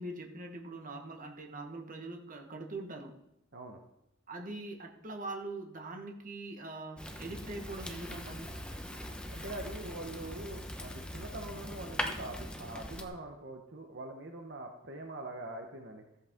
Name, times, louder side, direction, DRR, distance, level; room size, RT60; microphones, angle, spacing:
voice 1, 0.0-3.1 4.3-8.5, right 2 dB, 45° right, 3 dB, 1.3 m, -42 dB
Fire, 7.0-13.1, equal, 5° left, 1.0 m, -41 dB
voice 2, 9.3-16.0, right 2 dB, 60° right, 3 dB, 1.1 m, -43 dB
14.5 x 8.0 x 3.7 m, 0.83 s
head